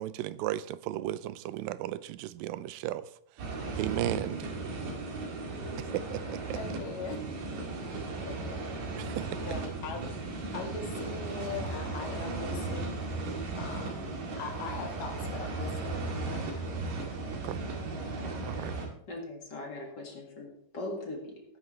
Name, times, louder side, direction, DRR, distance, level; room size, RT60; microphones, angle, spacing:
voice 1, 0.0-3.1 3.8-4.5 5.8-6.6 9.0-9.4 17.3-17.6 18.4-18.8, right 14 dB, 85° right, 2.3 m, -35 dB
sound 1, 3.4-18.9, right 3 dB, 55° right, 3.2 m, -36 dB
voice 2, 6.6-7.2 8.2-8.6 9.5-10.1 10.5-12.9 13.6-14.0 14.4-16.1 16.3-16.6 18.5-18.8, left 5 dB, 70° left, 3.2 m, -40 dB
voice 3, 19.1-21.4, left 2 dB, 40° left, 1.9 m, -40 dB
17.0 x 9.6 x 3.2 m
omnidirectional pair, 4.1 m